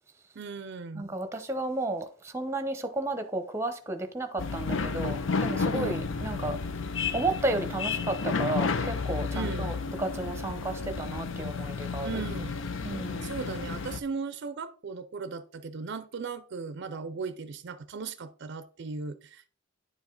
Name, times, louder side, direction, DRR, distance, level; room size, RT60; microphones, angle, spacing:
voice 1, 0.4-1.1 5.7-6.0 9.3-9.7 12.0-12.6 13.2-19.5, right 5 dB, 55° right, 0.5 m, -37 dB
voice 2, 0.9-6.6 7.1-12.2 12.8-13.3, right 2 dB, 15° right, 0.8 m, -33 dB
sound 1, 4.4-14.0, left 4 dB, 65° left, 0.6 m, -32 dB
10.0 x 4.8 x 3.8 m
head